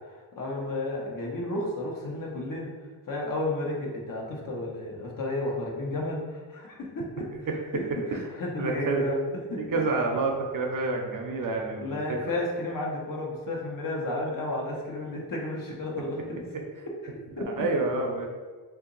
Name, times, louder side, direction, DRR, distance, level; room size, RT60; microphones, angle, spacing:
voice 1, 0.0-2.7 3.1-9.2 9.5-9.8 11.8-16.4 17.4-17.7, left 2 dB, 50° left, -2 dB, 1.0 m, -32 dB
voice 2, 8.6-9.0 9.6-12.2 17.5-18.3, right 3 dB, 50° right, 1 dB, 0.7 m, -28 dB
2.8 x 2.6 x 3.9 m, 1.4 s
cardioid pair, 65°, 41 cm